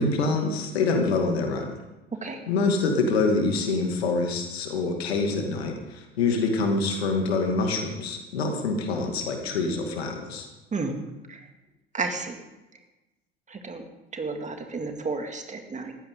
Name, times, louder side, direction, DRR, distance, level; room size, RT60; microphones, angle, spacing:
voice 1, 0.0-1.7 2.5-10.5, left 3 dB, 70° left, 3 dB, 2.5 m, -25 dB
voice 2, 11.9-12.4 13.5-13.8 14.1-15.9, right 3 dB, 25° right, 4 dB, 2.4 m, -32 dB
19.5 x 15.0 x 3.8 m, 1.0 s
figure-of-eight pair, 65°, 32 cm